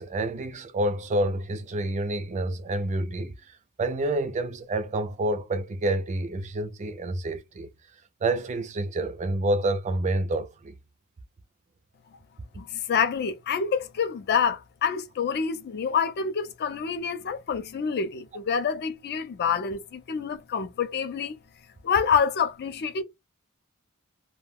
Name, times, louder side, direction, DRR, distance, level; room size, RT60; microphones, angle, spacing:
voice 1, 0.0-3.3 3.8-7.7 8.2-10.7, right 1 dB, 30° right, 0.3 m, -28 dB
voice 2, 12.6-21.4 21.8-23.0, left 6 dB, 50° left, 0.4 m, -27 dB
2.2 x 2.1 x 3.3 m
head